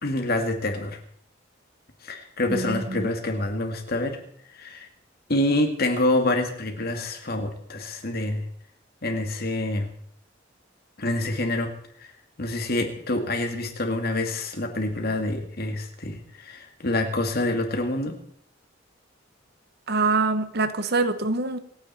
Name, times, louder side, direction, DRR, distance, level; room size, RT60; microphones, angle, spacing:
voice 1, 0.0-1.0 2.0-4.2 4.5-4.9 5.3-8.4 9.0-9.9 11.0-11.7 12.0-12.1 12.4-18.1, left 1 dB, 50° left, 4 dB, 2.4 m, -27 dB
voice 2, 2.5-3.1 19.9-21.6, right 3 dB, 55° right, 11 dB, 1.2 m, -25 dB
27.5 x 9.5 x 4.4 m, 0.65 s
head